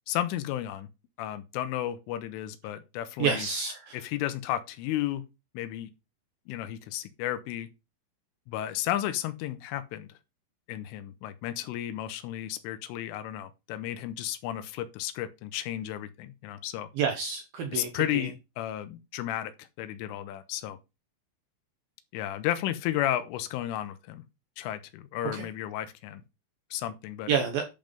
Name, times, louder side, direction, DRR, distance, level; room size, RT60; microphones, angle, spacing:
voice 1, 0.1-0.9 1.2-3.5 3.9-5.3 5.5-5.9 6.5-7.7 8.5-10.1 10.7-16.9 17.7-20.8 22.1-24.2 24.6-26.2 26.7-27.3, left 12 dB, 85° left, 3.3 m, -33 dB
voice 2, 3.2-4.0 17.0-17.9 18.1-18.3 25.3-25.5 27.3-27.6, right 6 dB, 75° right, 2.2 m, -28 dB
10.5 x 5.5 x 5.2 m
omnidirectional pair, 5.7 m